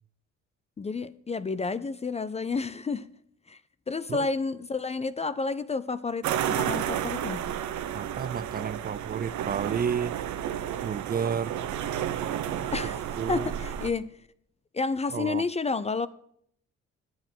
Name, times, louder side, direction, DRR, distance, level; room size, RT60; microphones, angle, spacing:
voice 1, 0.8-3.1 3.5-3.6 3.9-7.5 12.7-14.2 14.7-16.1, left 4 dB, 25° left, 0.4 m, -30 dB
sound 1, 6.2-13.9, right 10 dB, 85° right, 0.9 m, -31 dB
voice 2, 7.9-10.2 10.8-11.5 12.8-13.5 15.1-15.4, right 7 dB, 35° right, 0.4 m, -31 dB
8.8 x 7.8 x 7.6 m
cardioid pair, 90°, 29 cm